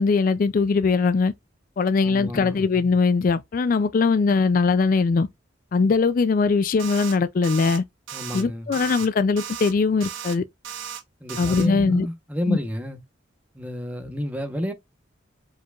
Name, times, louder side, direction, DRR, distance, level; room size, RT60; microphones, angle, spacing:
voice 1, 0.0-1.3 1.8-5.3 5.7-7.8 8.3-10.4 11.4-12.1 12.5-12.6, left 4 dB, 45° left, 0.3 m, -21 dB
voice 2, 2.0-2.6 8.1-8.7 11.2-13.0 13.5-14.7, left 1 dB, 10° right, 0.9 m, -30 dB
sound 1, 6.8-7.2 7.4-7.8 8.1-8.4 8.7-9.1 9.4-9.7 10.0-10.4 10.6-11.0 11.3-11.7, right 9 dB, 75° right, 1.2 m, -35 dB
4.8 x 4.5 x 2.3 m
head